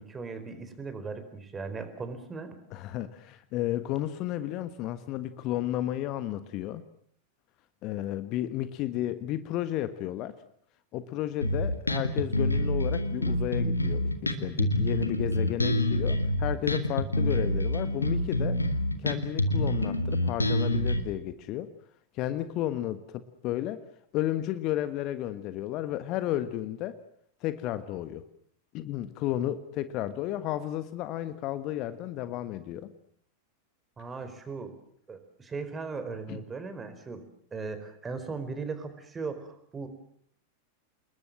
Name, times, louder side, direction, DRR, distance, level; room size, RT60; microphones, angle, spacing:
voice 1, 0.0-2.5 34.0-34.8 35.1-39.9, right 4 dB, 15° right, 10 dB, 4.3 m, -38 dB
voice 2, 2.7-6.8 7.8-10.4 10.9-18.6 19.0-21.7 22.1-23.8 24.1-27.0 27.4-28.2 28.7-32.9 36.3-36.4, left 13 dB, 40° left, 12 dB, 1.4 m, -32 dB
Bass guitar, 11.4-21.0, left 1 dB, 85° left, 2.2 m, -27 dB
28.0 x 21.0 x 7.6 m, 0.63 s
figure-of-eight pair, 90°, 0 cm